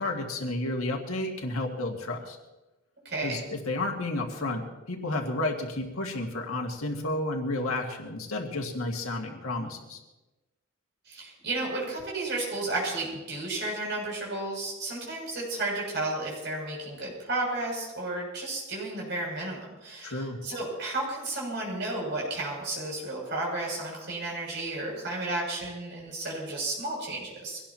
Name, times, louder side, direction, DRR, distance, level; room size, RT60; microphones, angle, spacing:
voice 1, 0.0-2.4 3.2-10.0 20.0-20.4, left 2 dB, 85° left, 1 dB, 2.1 m, -31 dB
voice 2, 3.0-3.4 11.1-27.6, right 2 dB, 55° right, -3 dB, 7.4 m, -33 dB
24.0 x 18.0 x 3.0 m, 1.1 s
head